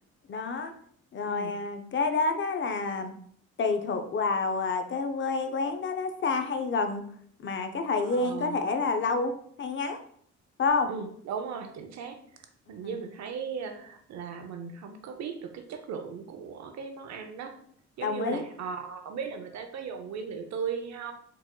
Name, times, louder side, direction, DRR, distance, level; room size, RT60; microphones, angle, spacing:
voice 1, 0.3-0.7 1.1-3.1 3.6-7.1 7.4-9.3 9.6-10.0 10.6-10.9 12.7-13.0 18.0-18.4, left 4 dB, 40° left, 6 dB, 0.5 m, -28 dB
voice 2, 1.2-1.5 8.0-8.6 10.9-12.2 12.7-17.5 18.0-21.1, right 6 dB, 65° right, 6 dB, 0.6 m, -37 dB
4.6 x 2.9 x 2.2 m, 0.63 s
cardioid pair, 90°, 30 cm